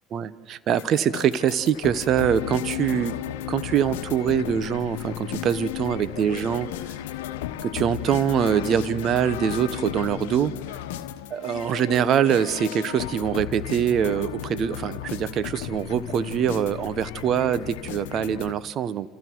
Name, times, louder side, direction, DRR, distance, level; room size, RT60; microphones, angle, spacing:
voice 1, 0.1-3.2 3.5-6.7 7.6-10.5 11.3-19.1, right 9 dB, 50° right, 15 dB, 1.1 m, -24 dB
sound 1, 0.8-18.5, left 12 dB, 75° left, 1.1 m, -34 dB
29.0 x 28.5 x 4.7 m, 1.2 s
hypercardioid pair, 70°, 0 cm